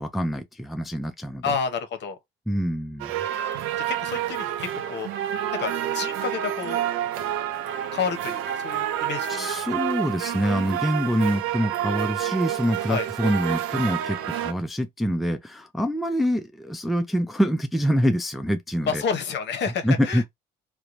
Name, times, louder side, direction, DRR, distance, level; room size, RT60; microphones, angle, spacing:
voice 1, 0.0-1.5 2.5-3.2 9.3-19.0 19.8-20.3, equal, ahead, 0.4 m, -25 dB
voice 2, 1.4-2.2 3.9-5.1 5.5-6.8 7.9-9.4 12.9-13.1 18.8-20.2, left 6 dB, 55° left, 0.8 m, -29 dB
sound 1, 3.0-14.5, right 11 dB, 75° right, 0.5 m, -29 dB
2.8 x 2.2 x 2.5 m
supercardioid pair, 70°, 21 cm